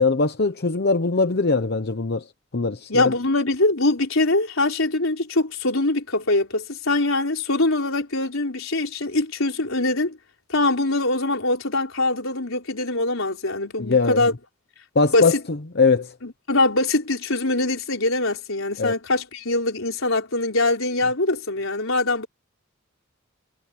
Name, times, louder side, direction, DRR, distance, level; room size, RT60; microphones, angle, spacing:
voice 1, 0.0-2.2 2.5-3.1 13.8-14.3 14.9-16.1 18.8-18.9, left 4 dB, 50° left, 0.9 m, -21 dB
voice 2, 2.9-10.2 10.5-14.3 15.1-15.3 16.2-22.3, left 2 dB, 75° left, 4.6 m, -23 dB
head